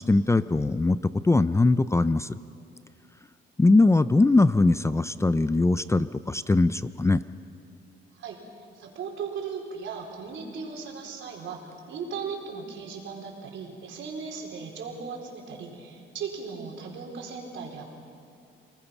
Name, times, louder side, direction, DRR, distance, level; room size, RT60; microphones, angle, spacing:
voice 1, 0.0-2.3 3.6-7.2, left 2 dB, 15° left, 14 dB, 0.5 m, -21 dB
voice 2, 8.1-17.8, right 5 dB, 75° right, 0 dB, 4.5 m, -37 dB
29.5 x 19.5 x 6.0 m, 2.5 s
cardioid pair, 90°, 20 cm